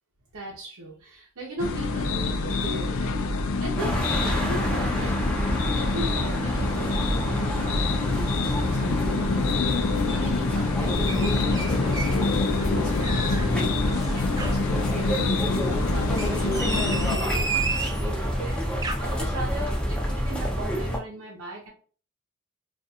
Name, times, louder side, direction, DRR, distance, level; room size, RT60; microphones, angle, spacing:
voice 1, 0.3-21.7, right 1 dB, 80° right, -2 dB, 0.8 m, -38 dB
sound 1, 1.6-17.2, left 3 dB, 70° left, 0.4 m, -26 dB
sound 2, 3.8-21.0, equal, 5° left, 0.7 m, -28 dB
sound 3, 11.1-12.2 12.6-13.5 13.9-14.6 16.0-18.0 18.6-19.0, right 4 dB, 15° right, 0.3 m, -32 dB
2.5 x 2.3 x 4.1 m, 0.41 s
head